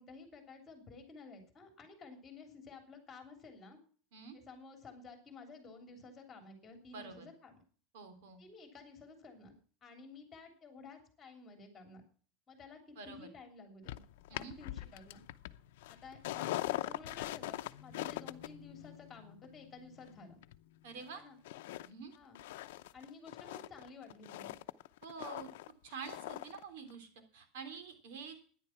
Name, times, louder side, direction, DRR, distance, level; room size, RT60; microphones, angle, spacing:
voice 1, 0.0-3.8 4.3-7.5 8.4-9.5 9.8-12.0 12.5-14.0 14.3-15.2 15.9-20.4 21.2-21.4 22.1-22.4 22.9-24.6, left 4 dB, 15° left, 5 dB, 3.1 m, -53 dB
voice 2, 6.9-7.3 7.9-8.4 13.0-13.3 14.3-14.5 20.8-21.2 21.8-22.1 25.0-25.5 25.8-28.4, right 5 dB, 80° right, 8 dB, 3.3 m, -47 dB
sound 1, 13.9-21.1 21.4-21.9 22.1-26.6 26.9-27.0, left 15 dB, 90° left, 0.6 m, -42 dB
13.0 x 10.5 x 5.9 m, 0.43 s
supercardioid pair, 175°, 0 cm